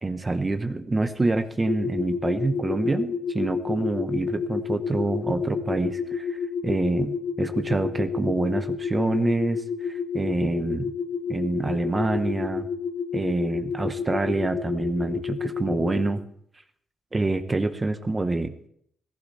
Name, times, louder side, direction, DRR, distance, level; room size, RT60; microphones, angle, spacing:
voice 1, 0.0-10.9 11.3-12.7 13.1-16.2 17.1-18.5, right 2 dB, 25° right, 8 dB, 1.2 m, -26 dB
sound 1, 1.6-16.0, left 6 dB, 45° left, 1.8 m, -30 dB
15.5 x 15.0 x 4.3 m, 0.67 s
cardioid pair, 80°, 0 cm